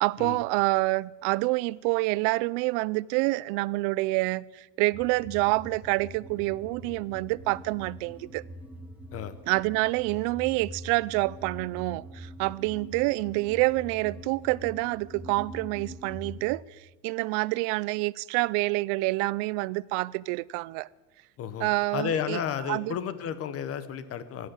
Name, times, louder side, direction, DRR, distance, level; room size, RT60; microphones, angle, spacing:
voice 1, 0.0-8.4 9.5-16.6 17.0-20.9 21.6-22.4 22.7-22.9, right 22 dB, 75° right, 0.5 m, -27 dB
sound 1, 4.9-16.4, equal, 5° right, 1.7 m, -44 dB
voice 2, 21.4-24.5, left 8 dB, 35° left, 0.9 m, -32 dB
14.0 x 9.4 x 8.0 m
cardioid pair, 155°, 39 cm